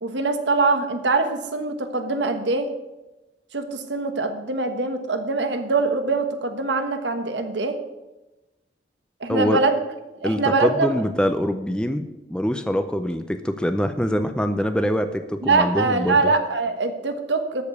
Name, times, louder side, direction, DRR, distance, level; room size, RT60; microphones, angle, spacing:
voice 1, 0.0-2.7 3.5-7.8 9.2-9.8 10.1-11.0 15.4-17.6, right 3 dB, 85° right, 7 dB, 1.3 m, -23 dB
voice 2, 10.2-16.2, equal, 5° left, 8 dB, 0.5 m, -24 dB
13.0 x 5.2 x 8.2 m, 1.0 s
head